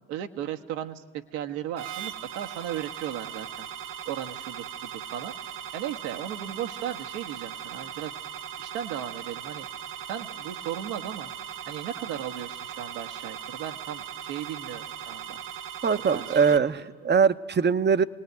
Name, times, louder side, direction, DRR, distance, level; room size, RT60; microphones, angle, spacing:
voice 1, 0.1-3.7 4.0-5.3 5.7-8.1 8.6-9.7 10.1-11.3 11.7-15.4 16.1-16.3, right 10 dB, 70° right, 6 dB, 1.6 m, -36 dB
sound 1, 1.8-16.6, right 9 dB, 55° right, 2.0 m, -39 dB
voice 2, 15.8-18.0, right 6 dB, 20° right, 14 dB, 0.8 m, -22 dB
27.5 x 19.5 x 9.4 m, 1.5 s
hypercardioid pair, 70°, 49 cm